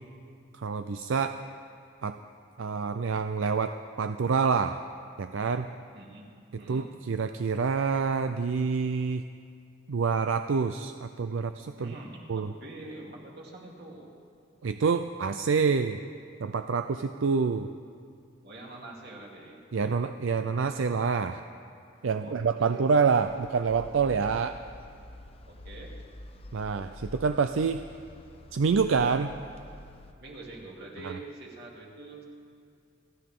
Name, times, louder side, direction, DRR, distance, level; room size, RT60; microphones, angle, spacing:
voice 1, 0.5-1.4 2.0-2.2 2.6-4.8 5.2-5.7 6.7-9.2 9.9-11.9 12.3-12.5 14.6-16.0 16.4-17.7 19.7-21.4 22.0-24.5 26.5-27.8 28.5-29.4 31.0-31.2, right 5 dB, 80° right, 9 dB, 0.5 m, -27 dB
voice 2, 5.9-6.3 6.6-6.9 11.8-14.1 18.4-19.6 22.2-22.8 24.4-24.5 25.5-25.9 30.2-32.2, right 2 dB, 50° right, -2 dB, 2.8 m, -45 dB
sound 1, 23.1-30.1, left 1 dB, 30° left, 0.7 m, -47 dB
29.5 x 12.0 x 3.7 m, 2.4 s
head